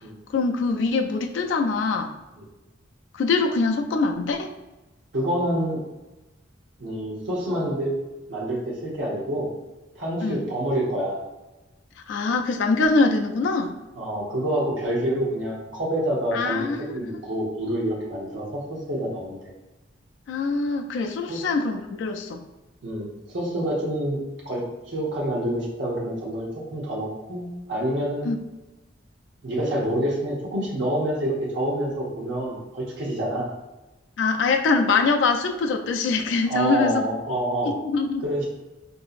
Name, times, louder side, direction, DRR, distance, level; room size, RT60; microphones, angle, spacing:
voice 1, 0.3-2.1 3.1-4.5 10.2-10.4 12.1-13.7 16.3-17.0 20.3-22.4 28.3-28.4 34.2-37.1 37.6-38.2, left 4 dB, 70° left, 4 dB, 0.3 m, -23 dB
voice 2, 5.1-5.8 6.8-7.9 8.3-9.5 9.9-11.2 13.9-19.5 21.3-21.4 22.8-24.2 24.4-28.3 29.4-33.5 36.5-37.7 38.2-38.5, right 1 dB, 70° right, -4 dB, 0.8 m, -27 dB
3.8 x 2.6 x 2.4 m, 1.0 s
head